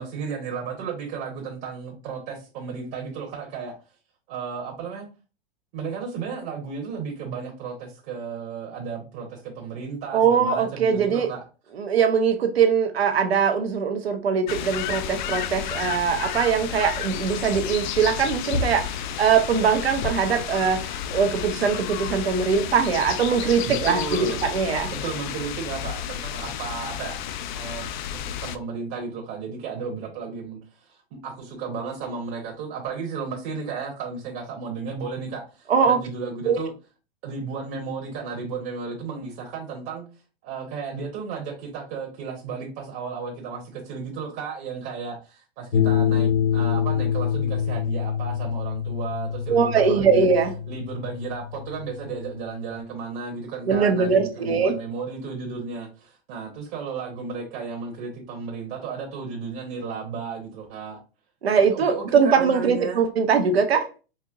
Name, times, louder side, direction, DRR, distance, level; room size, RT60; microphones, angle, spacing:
voice 1, 0.0-3.8 4.3-5.1 5.7-11.4 23.7-24.4 24.8-27.2 27.5-31.0 31.2-36.7 37.2-40.0 40.4-50.2 50.7-61.0 61.6-63.1, right 5 dB, 40° right, 1.0 m, -34 dB
voice 2, 10.1-11.3 11.8-24.9 35.7-36.0 36.4-36.6 49.5-50.5 53.7-54.7 61.4-63.9, right 6 dB, 80° right, 0.9 m, -21 dB
sound 1, 14.5-28.6, left 9 dB, 50° left, 0.4 m, -31 dB
sound 2, 45.7-52.8, left 9 dB, 70° left, 0.7 m, -26 dB
4.3 x 2.8 x 2.4 m
hypercardioid pair, 115°, 31 cm